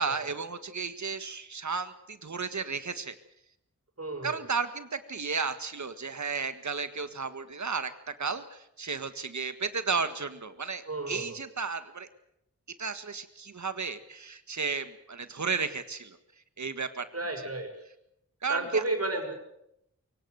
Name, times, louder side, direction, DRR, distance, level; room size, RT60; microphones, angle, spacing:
voice 1, 0.0-3.2 4.2-12.1 12.8-16.2 16.6-17.1 18.4-18.8, right 5 dB, 70° right, 10 dB, 1.7 m, -33 dB
voice 2, 4.0-4.4 10.9-11.4 17.1-17.7 18.5-19.3, right 2 dB, 55° right, 3 dB, 5.9 m, -32 dB
23.0 x 17.5 x 8.0 m, 0.80 s
wide cardioid pair, 75°, 30 cm